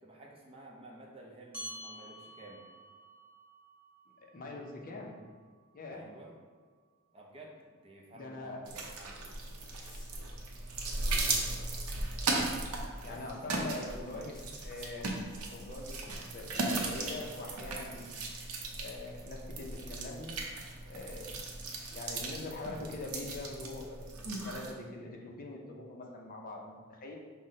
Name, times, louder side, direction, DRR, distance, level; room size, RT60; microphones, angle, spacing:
voice 1, 0.0-2.6 5.9-6.3 7.1-9.2 13.0-14.3, right 1 dB, 25° right, -1 dB, 0.6 m, -51 dB
sound 1, 1.5-6.3, equal, 10° right, 1.4 m, -50 dB
voice 2, 4.2-5.2 5.7-6.1 8.1-8.6 11.0-11.5 13.0-15.1 15.5-18.2 18.8-20.3 20.9-21.3 21.9-24.1 24.4-27.1, left 2 dB, 40° left, 0 dB, 0.5 m, -43 dB
sound 2, 8.7-24.7, right 2 dB, 75° right, 0.6 m, -37 dB
sound 3, 9.5-10.1 11.6-12.0 14.3-14.9 17.3-17.6, left 2 dB, 20° left, 1.0 m, -58 dB
5.7 x 2.1 x 3.8 m, 1.5 s
head